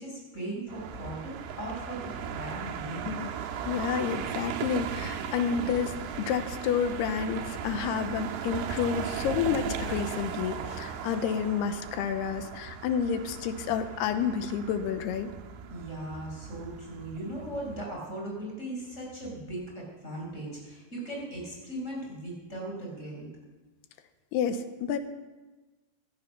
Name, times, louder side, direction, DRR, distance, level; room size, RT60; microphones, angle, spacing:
voice 1, 0.0-3.1 15.7-23.3, right 1 dB, 15° left, -2 dB, 4.9 m, -38 dB
sound 1, 0.7-17.9, right 7 dB, 80° right, 3.1 m, -37 dB
voice 2, 3.7-15.3 24.3-25.0, left 7 dB, 90° left, 9 dB, 2.9 m, -30 dB
16.5 x 12.0 x 5.9 m, 1.2 s
omnidirectional pair, 4.6 m